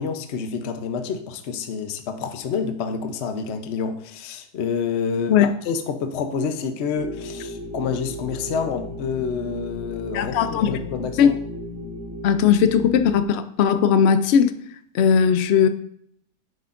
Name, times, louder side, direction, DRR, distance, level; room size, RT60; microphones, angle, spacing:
voice 1, 0.0-11.4, left 6 dB, 50° left, 0.9 m, -28 dB
sound 1, 6.9-13.2, equal, 15° right, 0.6 m, -35 dB
voice 2, 10.1-10.7 11.2-11.3 12.2-14.6 14.9-15.7, left 7 dB, 90° left, 0.5 m, -18 dB
10.0 x 7.8 x 2.5 m
omnidirectional pair, 1.7 m